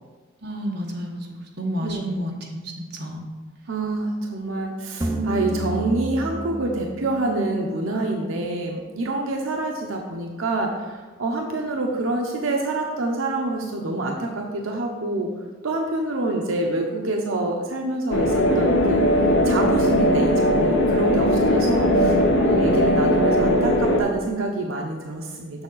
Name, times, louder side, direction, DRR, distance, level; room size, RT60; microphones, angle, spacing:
voice 1, 0.4-3.2 21.9-22.2, right 1 dB, 50° right, 0 dB, 1.1 m, -30 dB
voice 2, 3.7-15.3 15.6-19.0 19.4-25.6, right 2 dB, 80° right, 1 dB, 0.7 m, -26 dB
sound 1, 5.0-8.3, right 1 dB, 15° right, 0.5 m, -29 dB
sound 2, 18.1-24.0, equal, 60° left, 0.8 m, -19 dB
6.9 x 6.4 x 3.9 m, 1.4 s
head